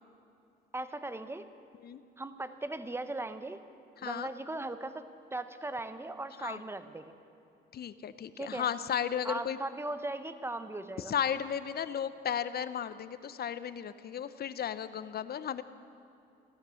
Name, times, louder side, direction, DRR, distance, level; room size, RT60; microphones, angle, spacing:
voice 1, 0.7-1.4 2.2-3.6 4.0-5.0 5.3-7.1 8.4-8.7 9.2-11.1, right 2 dB, 10° right, 11 dB, 0.9 m, -38 dB
voice 2, 4.0-4.3 6.4-6.6 7.7-9.6 11.0-15.6, left 8 dB, 55° left, 14 dB, 0.7 m, -34 dB
16.0 x 13.0 x 6.4 m, 2.8 s
cardioid pair, 90°, 20 cm